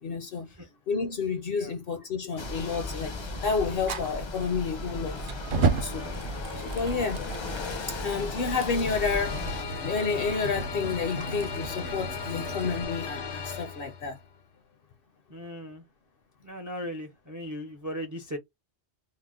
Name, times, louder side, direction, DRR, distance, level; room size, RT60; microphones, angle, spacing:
voice 1, 0.0-0.5 0.9-5.2 5.8-6.1 6.6-7.2 7.9-14.2, left 5 dB, 60° left, 0.7 m, -30 dB
sound 1, 2.4-9.6, left 2 dB, 40° left, 0.4 m, -36 dB
Fire, 3.9-12.8, right 4 dB, 55° right, 0.7 m, -35 dB
sound 2, 4.7-14.2, left 5 dB, 90° left, 1.2 m, -38 dB
voice 2, 15.3-15.8 16.4-18.4, equal, 30° right, 0.3 m, -37 dB
2.9 x 2.0 x 3.4 m
omnidirectional pair, 1.2 m